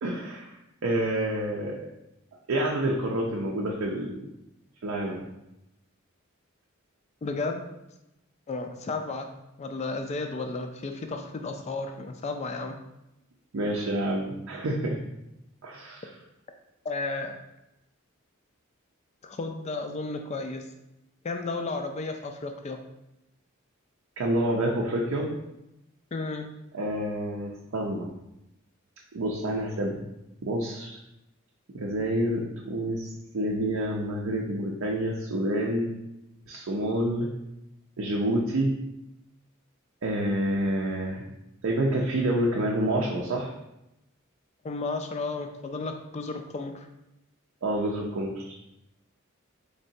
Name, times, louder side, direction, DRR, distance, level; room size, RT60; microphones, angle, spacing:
voice 1, 0.0-0.5 0.8-1.9 2.5-4.2 4.8-5.2 13.5-15.0 15.6-16.0 24.2-25.3 26.7-28.1 29.1-30.0 30.4-31.0 31.7-33.1 33.3-35.9 36.5-37.3 38.0-38.7 40.0-41.2 41.6-43.5 47.6-48.5, right 1 dB, 70° right, -2 dB, 0.5 m, -28 dB
voice 2, 7.2-7.6 8.5-9.3 9.6-12.8 16.8-17.3 19.2-20.7 21.2-22.8 26.1-26.5 44.6-46.9, left 3 dB, 30° left, 5 dB, 0.3 m, -33 dB
3.8 x 3.2 x 2.6 m, 0.88 s
head